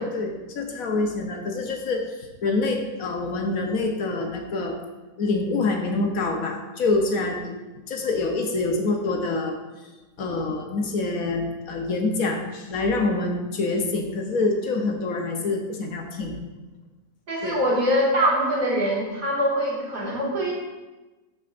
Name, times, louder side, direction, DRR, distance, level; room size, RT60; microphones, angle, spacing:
voice 1, 0.0-4.8 5.2-7.5 7.9-9.9 10.2-16.4 17.4-17.6, left 3 dB, 70° left, 3 dB, 1.3 m, -26 dB
voice 2, 17.3-20.5, equal, 65° right, -5 dB, 2.5 m, -23 dB
12.0 x 5.3 x 2.5 m, 1.1 s
omnidirectional pair, 1.6 m